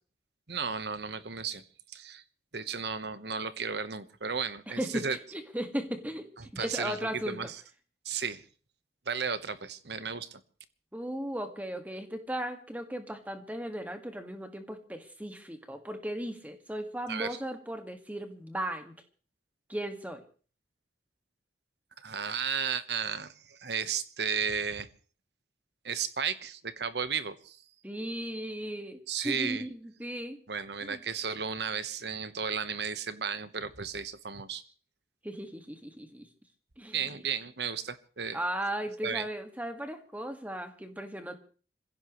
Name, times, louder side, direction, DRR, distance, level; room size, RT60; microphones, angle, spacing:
voice 1, 0.5-1.6 1.9-2.2 2.5-5.2 6.6-7.6 8.0-8.4 9.1-10.4 17.1-17.4 22.0-24.9 25.8-27.6 29.1-29.6 30.5-34.6 36.9-38.4 39.0-39.3, right 6 dB, 70° right, 12 dB, 1.2 m, -34 dB
voice 2, 4.7-7.5 10.9-18.9 19.7-20.2 27.8-30.4 30.9-31.0 35.2-36.3 36.8-37.2 38.3-41.4, right 1 dB, 10° right, 6 dB, 1.9 m, -36 dB
26.0 x 16.0 x 3.2 m, 0.41 s
head